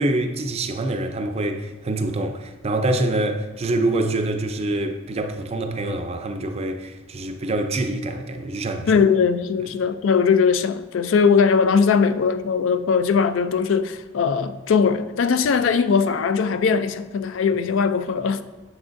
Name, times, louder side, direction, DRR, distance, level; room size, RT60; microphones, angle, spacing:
voice 1, 0.0-9.0, right 2 dB, 30° right, 0.4 m, -25 dB
voice 2, 8.9-18.4, left 5 dB, 70° left, 0.4 m, -20 dB
7.2 x 6.2 x 2.5 m
head